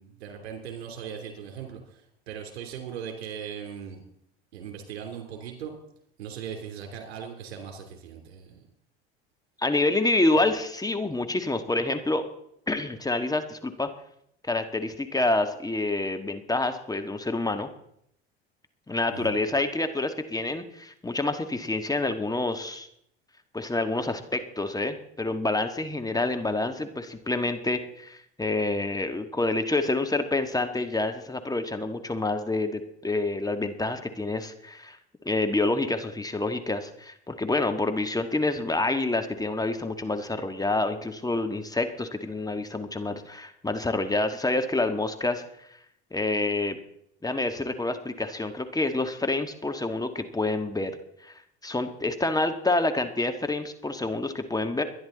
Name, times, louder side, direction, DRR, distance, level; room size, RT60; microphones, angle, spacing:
voice 1, 0.0-4.0 4.5-5.7 6.2-8.6 19.1-19.4, right 8 dB, 80° right, 4 dB, 3.4 m, -39 dB
voice 2, 9.6-12.2 12.7-13.9 14.5-17.7 18.9-22.9 23.5-35.0 35.2-45.7 46.1-46.8 47.2-50.9 51.2-51.3 51.6-54.8, left 2 dB, 10° left, 6 dB, 1.6 m, -27 dB
23.0 x 10.5 x 4.1 m, 0.72 s
hypercardioid pair, 75°, 31 cm